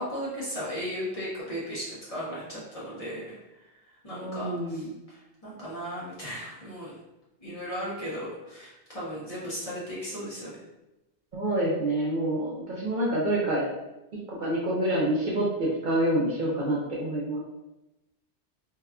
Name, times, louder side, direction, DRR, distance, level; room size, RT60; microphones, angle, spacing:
voice 1, 0.0-3.7 4.0-6.9 7.4-10.6, equal, 40° left, -7 dB, 0.7 m, -36 dB
voice 2, 4.1-4.9 11.3-13.7 14.3-17.4, right 1 dB, 55° right, -5 dB, 0.6 m, -27 dB
2.7 x 2.2 x 2.3 m, 0.96 s
omnidirectional pair, 1.1 m